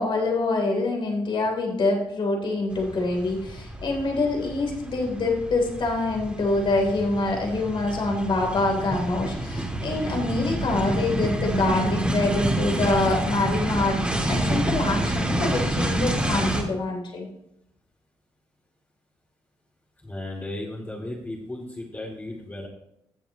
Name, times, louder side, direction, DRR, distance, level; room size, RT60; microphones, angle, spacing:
voice 1, 0.0-17.3, left 2 dB, 55° left, 0 dB, 3.3 m, -25 dB
sound 1, 2.7-16.6, right 1 dB, 10° right, 2.6 m, -28 dB
voice 2, 20.0-22.7, left 1 dB, 20° left, -4 dB, 2.6 m, -35 dB
16.5 x 7.1 x 3.0 m, 0.79 s
supercardioid pair, 60°, 10 cm